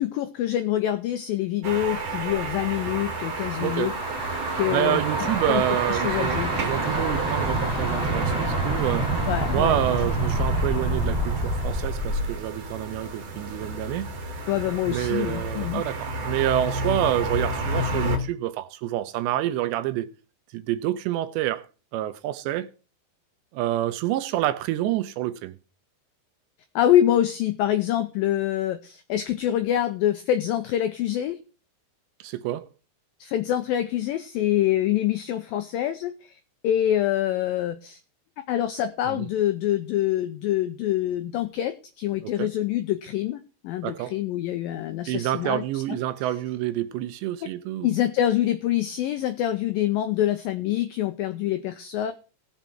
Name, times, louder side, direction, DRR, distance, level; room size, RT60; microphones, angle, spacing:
voice 1, 0.0-3.9 4.5-5.0 5.5-5.6 5.9-6.5 9.3-9.8 14.5-15.8 26.8-31.4 33.2-38.0 38.5-45.8 47.8-52.1, left 12 dB, 85° left, 2.0 m, -25 dB
sound 1, 1.6-18.2, right 2 dB, 50° right, 2.0 m, -31 dB
sound 2, 2.6-12.4, right 1 dB, 20° left, 1.9 m, -28 dB
voice 2, 3.6-3.9 4.4-9.2 9.5-14.1 14.8-20.1 20.5-21.7 21.9-22.7 23.5-25.6 32.2-32.7 39.1-39.3 42.2-42.5 43.8-44.2 45.1-47.9, right 13 dB, 90° right, 3.0 m, -28 dB
17.0 x 7.3 x 4.5 m
omnidirectional pair, 5.0 m